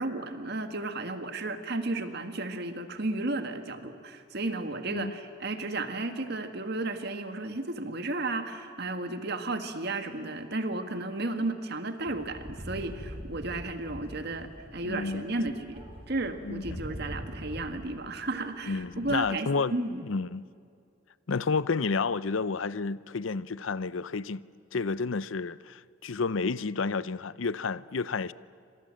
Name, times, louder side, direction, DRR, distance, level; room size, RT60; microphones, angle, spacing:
voice 1, 0.0-15.8 16.1-20.0, right 2 dB, 55° right, 1.8 m, -33 dB
sound 1, 12.1-18.0 18.2-19.2, equal, 30° right, 4.5 m, -43 dB
voice 2, 14.8-15.2 16.4-16.8 18.7-19.7 20.0-20.5 21.3-24.4 24.7-28.3, left 4 dB, 85° left, 0.6 m, -30 dB
28.5 x 25.5 x 7.7 m
head